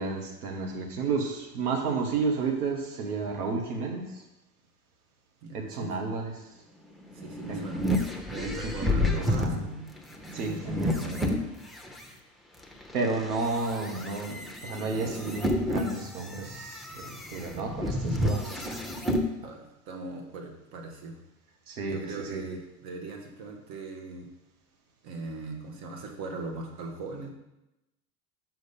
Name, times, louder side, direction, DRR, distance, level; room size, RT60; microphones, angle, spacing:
voice 1, 0.0-4.2 5.5-6.5 7.5-7.6 8.4-9.6 10.3-11.4 12.9-18.8 21.7-22.0 22.3-22.4, right 4 dB, 75° right, 2 dB, 1.6 m, -32 dB
voice 2, 5.4-5.9 7.1-7.8 8.3-9.9 19.4-21.2 21.8-24.3 25.0-27.3, right 3 dB, 50° right, 3 dB, 1.7 m, -39 dB
sound 1, 7.0-12.1 12.6-19.3, left 1 dB, ahead, 0.8 m, -31 dB
5.7 x 5.3 x 5.4 m, 0.93 s
hypercardioid pair, 75°, 45 cm